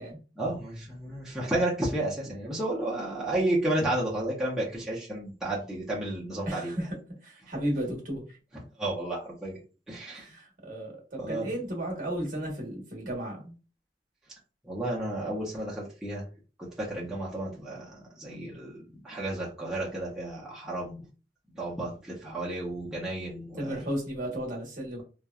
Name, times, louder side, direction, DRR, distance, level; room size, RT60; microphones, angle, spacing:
voice 1, 0.4-6.8 8.5-10.3 11.2-11.5 14.6-16.2 16.6-21.0 21.5-23.8, right 1 dB, 5° right, -7 dB, 0.7 m, -32 dB
voice 2, 6.5-6.9 7.2-8.4 10.1-13.5 23.6-25.0, right 1 dB, 50° right, -1 dB, 1.1 m, -34 dB
3.0 x 2.2 x 2.3 m, 0.35 s
head